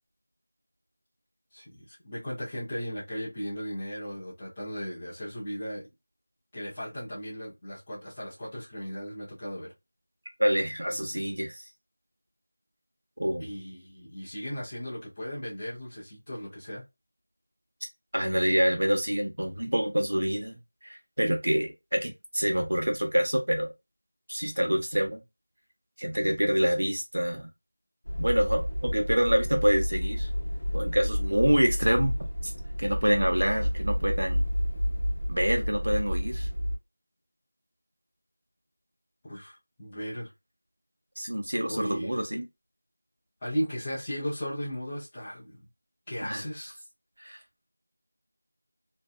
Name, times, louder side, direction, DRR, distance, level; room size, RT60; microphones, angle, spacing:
voice 1, 1.5-5.8 6.5-9.7 11.0-11.1 13.4-16.8 39.2-40.3 41.7-42.2 43.4-45.6 46.1-46.8, equal, 10° left, 0.5 m, -36 dB
voice 2, 10.4-11.6 13.2-13.5 18.1-20.6 20.8-23.7 24.3-25.2 26.0-27.5 28.2-30.3 30.7-32.1 32.4-32.5 32.8-34.4 35.3-36.5 41.2-42.5 46.2-46.4 47.2-47.4, equal, 80° right, 0.8 m, -26 dB
sound 1, 28.1-36.8, equal, 45° left, 0.7 m, -30 dB
2.6 x 2.2 x 2.2 m
figure-of-eight pair, 180°, 0 cm